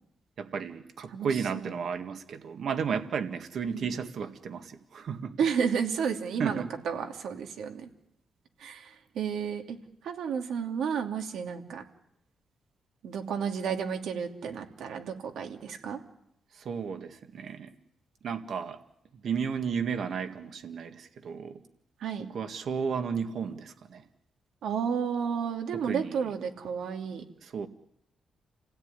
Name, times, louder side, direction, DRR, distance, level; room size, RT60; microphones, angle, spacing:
voice 1, 0.4-5.4 6.4-6.7 16.5-17.7 18.2-18.8 19.2-21.6 22.2-24.0 25.7-26.3 27.4-27.7, right 6 dB, 55° right, 8 dB, 1.9 m, -33 dB
voice 2, 1.1-1.7 3.7-3.9 5.4-7.9 8.6-9.8 10.0-11.8 13.0-16.0 22.0-22.3 24.6-27.2, right 7 dB, 80° right, 4 dB, 2.8 m, -32 dB
29.5 x 16.5 x 9.8 m, 0.82 s
wide cardioid pair, 160°, 0 cm